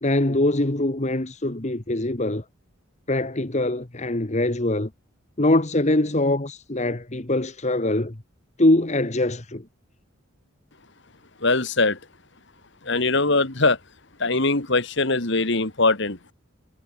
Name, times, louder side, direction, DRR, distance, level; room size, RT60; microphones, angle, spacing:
voice 1, 0.0-2.4 3.1-4.9 5.4-8.2 8.6-9.6, left 1 dB, 35° left, 1.5 m, -23 dB
voice 2, 11.4-12.0 12.9-13.8 14.2-16.3, left 3 dB, 60° left, 2.5 m, -21 dB
head